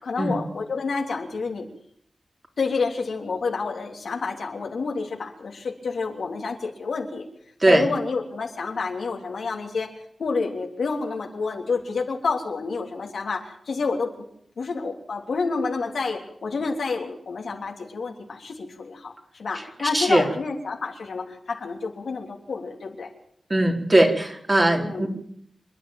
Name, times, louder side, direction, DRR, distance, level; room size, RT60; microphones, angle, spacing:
voice 1, 0.0-1.6 2.6-7.3 7.6-9.9 10.2-14.2 14.6-23.1 24.7-25.1, left 4 dB, 85° left, 2 dB, 3.3 m, -29 dB
voice 2, 19.9-20.2 23.5-25.1, right 1 dB, 35° right, 1 dB, 4.3 m, -19 dB
27.0 x 10.5 x 9.1 m, 0.69 s
cardioid pair, 60°, 0 cm